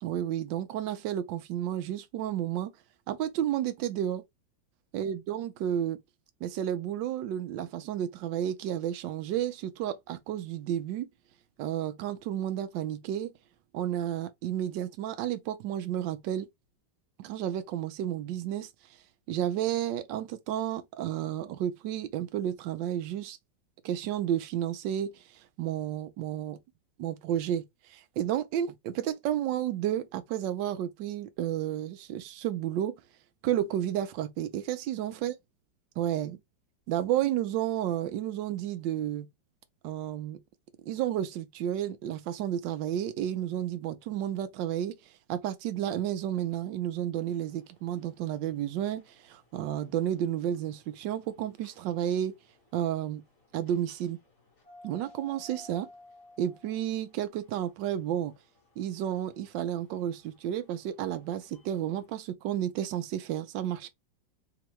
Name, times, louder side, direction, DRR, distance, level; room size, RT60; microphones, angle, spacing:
voice 1, 0.0-2.7 3.1-4.2 4.9-6.0 6.4-11.1 11.6-13.3 13.7-16.5 17.2-18.7 19.3-23.4 23.8-25.1 25.6-26.6 27.0-27.6 27.9-32.9 33.4-35.3 36.0-36.4 36.9-39.3 39.8-40.4 40.9-44.9 45.3-52.3 52.7-53.2 53.5-54.2 54.8-55.9 56.4-58.3 58.8-63.9, right 11 dB, 75° right, 1.3 m, -31 dB
sound 1, 47.2-62.2, left 2 dB, 45° left, 2.2 m, -59 dB
4.3 x 2.9 x 3.1 m
omnidirectional pair, 2.1 m